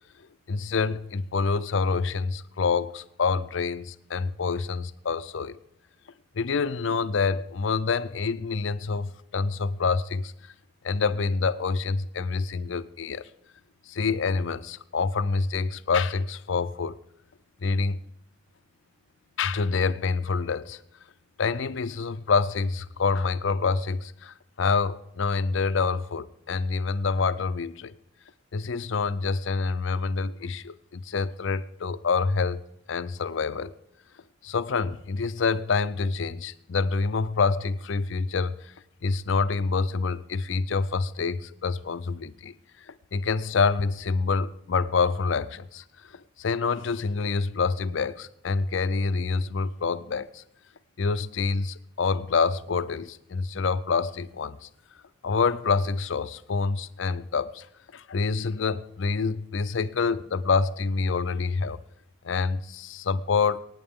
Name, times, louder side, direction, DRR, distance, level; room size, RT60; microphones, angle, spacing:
voice 1, 0.5-5.6 6.3-10.3 10.8-13.3 13.9-17.0 17.6-18.0 19.4-20.8 21.4-27.9 28.5-32.6 32.9-33.7 34.4-38.7 39.0-42.5 42.9-50.4 51.0-54.7 55.2-57.7 57.9-61.8 62.2-63.6, left 4 dB, 60° left, 0.5 m, -27 dB
23.5 x 9.6 x 3.7 m
head